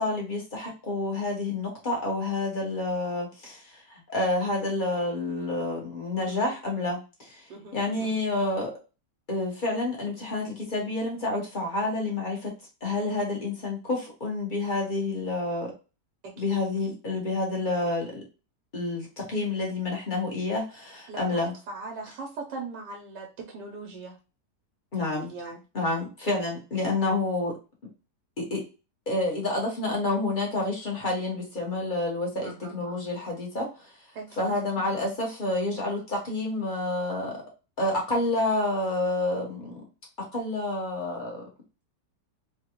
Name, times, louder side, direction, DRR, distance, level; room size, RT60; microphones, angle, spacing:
voice 1, 0.0-7.4 7.7-8.7 9.3-12.5 12.8-15.7 16.4-18.2 18.7-21.5 24.9-25.3 25.7-27.5 28.4-28.6 29.1-33.9 34.4-37.4 37.8-39.8 40.3-41.4, left 2 dB, 30° left, -2 dB, 1.2 m, -29 dB
voice 2, 7.5-8.3 16.2-16.6 21.1-24.2 24.9-25.6 32.4-32.7 34.1-34.6, right 3 dB, 80° right, 1 dB, 1.4 m, -40 dB
3.5 x 2.4 x 2.9 m, 0.31 s
omnidirectional pair, 1.8 m